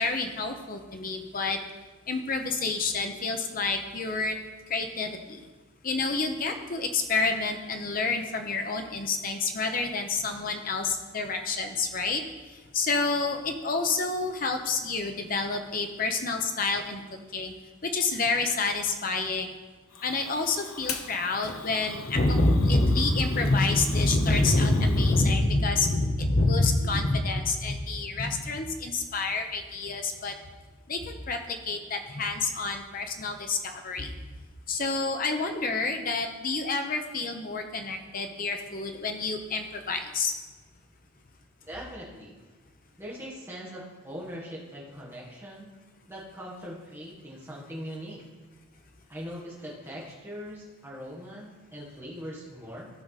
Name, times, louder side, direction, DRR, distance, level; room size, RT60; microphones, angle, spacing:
voice 1, 0.0-1.6 2.1-4.4 4.7-5.5 5.8-17.5 17.8-19.6 20.0-30.3 30.9-34.1 34.7-40.3, left 3 dB, 40° left, 5 dB, 0.8 m, -28 dB
Fire, 19.9-25.2, left 5 dB, 85° left, 0.8 m, -42 dB
voice 2, 41.7-42.4 43.0-45.7 46.1-48.2 49.1-52.9, equal, 10° right, -4 dB, 1.8 m, -41 dB
14.0 x 5.1 x 4.1 m, 1.3 s
head